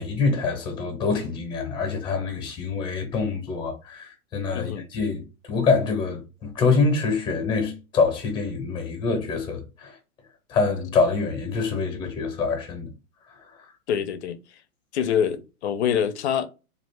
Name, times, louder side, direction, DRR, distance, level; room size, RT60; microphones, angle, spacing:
voice 1, 0.0-10.0 10.5-12.9, left 4 dB, 10° left, 0.7 m, -25 dB
voice 2, 4.5-4.9 13.9-14.4 14.9-16.5, left 8 dB, 50° left, 0.5 m, -25 dB
2.4 x 2.4 x 3.2 m
hypercardioid pair, 130°, 45 cm